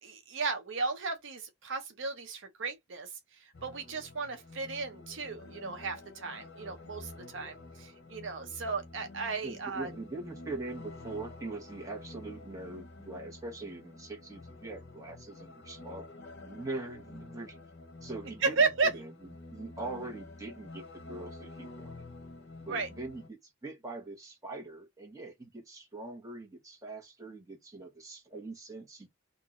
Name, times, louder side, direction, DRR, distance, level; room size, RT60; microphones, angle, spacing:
voice 1, 0.0-3.1 3.6-9.9 18.4-18.9 22.7-22.9, right 4 dB, 65° right, 0.7 m, -34 dB
sound 1, 3.5-23.3, left 2 dB, 60° left, 0.8 m, -49 dB
voice 2, 9.4-16.1 16.4-17.6 18.0-19.1 19.5-22.0 22.6-29.1, right 2 dB, 15° right, 1.3 m, -42 dB
2.9 x 2.6 x 3.6 m
head